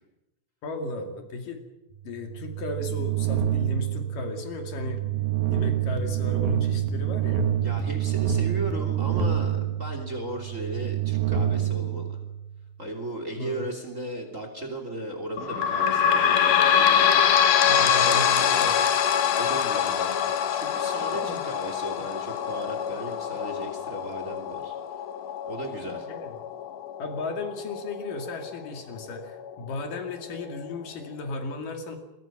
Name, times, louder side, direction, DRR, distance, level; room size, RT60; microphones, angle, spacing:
voice 1, 0.6-1.6 2.0-5.1 5.4-7.5 13.4-13.7 17.7-18.8 21.2-21.4 25.8-26.4 27.0-32.0, left 2 dB, 65° left, 5 dB, 4.0 m, -35 dB
sound 1, 2.1-12.7, right 10 dB, 75° right, 3.6 m, -27 dB
voice 2, 7.6-12.2 12.8-17.3 17.7-18.7 19.4-24.7 25.5-26.1, right 1 dB, 20° right, 5 dB, 2.9 m, -36 dB
sound 2, 15.4-28.5 29.1-29.2 29.5-29.6 30.4-30.5, left 8 dB, 85° left, 3.2 m, -24 dB
28.0 x 22.5 x 6.0 m, 0.94 s
omnidirectional pair, 4.1 m